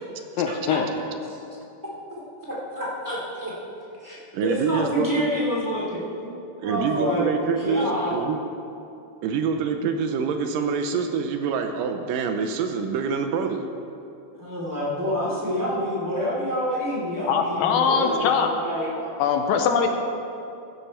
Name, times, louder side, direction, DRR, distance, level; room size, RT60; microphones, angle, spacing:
voice 1, 0.4-0.8 17.3-18.5 19.2-19.9, left 6 dB, 80° left, 5 dB, 2.4 m, -22 dB
voice 2, 2.4-3.5 4.0-7.3 7.6-8.2 14.4-19.1, equal, 5° right, -6 dB, 2.4 m, -28 dB
voice 3, 4.3-5.4 6.6-8.4 9.2-13.7, right 5 dB, 80° right, 6 dB, 2.2 m, -26 dB
14.5 x 10.5 x 4.3 m, 2.7 s
omnidirectional pair, 4.1 m